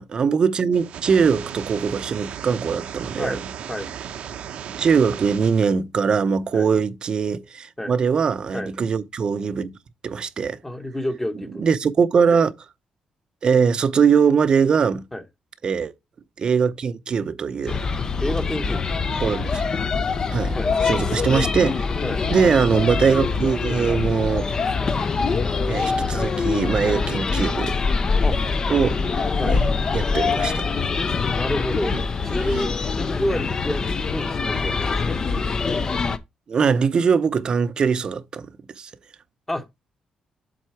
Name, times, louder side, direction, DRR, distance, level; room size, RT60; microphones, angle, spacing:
voice 1, 0.0-3.4 4.7-9.7 10.0-10.6 11.6-12.5 13.4-15.1 15.6-15.9 16.4-17.8 19.2-19.6 20.3-20.6 20.8-21.9 22.3-24.5 25.7-27.8 28.7-29.6 29.9-30.7 31.9-32.0 32.3-32.5 36.5-38.5 38.8-38.9, right 6 dB, 40° right, 0.7 m, -21 dB
sound 1, 0.7-5.7, right 8 dB, 70° right, 0.9 m, -35 dB
voice 2, 10.6-11.6 15.1-15.2 18.2-18.9 20.5-20.7 22.0-22.2 26.9-27.0 28.2-28.4 29.4-29.6 31.3-31.9 32.2-35.2 39.5-39.6, left 1 dB, 10° left, 1.0 m, -29 dB
sound 2, 17.7-36.2, left 4 dB, 35° left, 0.6 m, -24 dB
7.8 x 3.8 x 4.5 m
cardioid pair, 130°, 2 cm